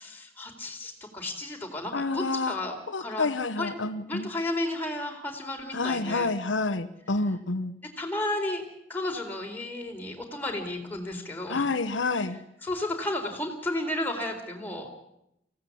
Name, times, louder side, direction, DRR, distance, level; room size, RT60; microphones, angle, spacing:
voice 1, 0.0-3.3 3.6-3.7 4.1-6.3 8.0-8.6 8.9-11.6 12.6-14.9, left 1 dB, 10° left, 1 dB, 4.1 m, -33 dB
voice 2, 1.9-2.6 2.9-4.3 5.7-7.7 11.5-12.4, left 3 dB, 90° left, 9 dB, 1.1 m, -28 dB
24.0 x 16.5 x 8.6 m, 0.82 s
head